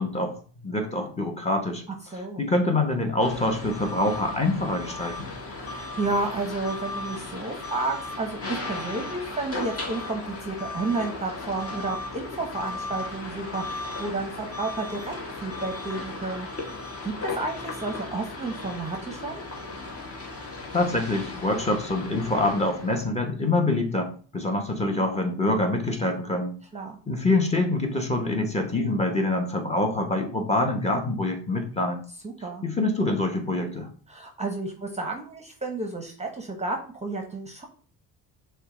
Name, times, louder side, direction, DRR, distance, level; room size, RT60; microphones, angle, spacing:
voice 1, 0.0-1.8 2.4-5.3 20.7-26.5 27.1-32.0 32.6-33.9, left 2 dB, 15° left, 3 dB, 1.0 m, -25 dB
voice 2, 2.1-2.4 5.6-16.5 17.0-19.4 26.7-27.0 32.2-32.6 34.1-37.6, right 3 dB, 15° right, 3 dB, 0.8 m, -31 dB
sound 1, 3.2-23.0, left 2 dB, 35° left, 1.3 m, -36 dB
6.3 x 2.3 x 3.7 m, 0.42 s
cardioid pair, 100°, 40 cm